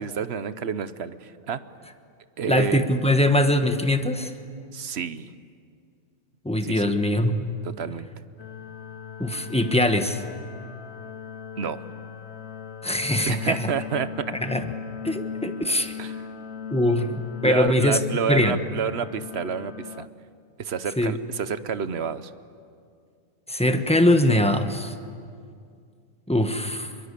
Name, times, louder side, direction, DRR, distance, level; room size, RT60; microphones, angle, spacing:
voice 1, 0.0-1.6 2.4-2.8 4.7-5.3 6.6-6.9 7.6-8.1 11.6-11.8 13.3-14.3 16.0-16.1 17.4-20.1 20.6-22.3, right 7 dB, 55° right, 13 dB, 1.1 m, -29 dB
voice 2, 2.5-4.3 6.4-7.6 9.2-10.2 12.8-13.7 14.4-14.7 15.0-16.0 16.7-18.0 18.3-18.5 21.0-21.1 23.5-24.9 26.3-26.9, left 1 dB, 5° left, 7 dB, 1.2 m, -22 dB
sound 1, 8.4-20.1, left 6 dB, 55° left, 1.0 m, -38 dB
27.0 x 22.5 x 8.4 m, 2.3 s
omnidirectional pair, 1.5 m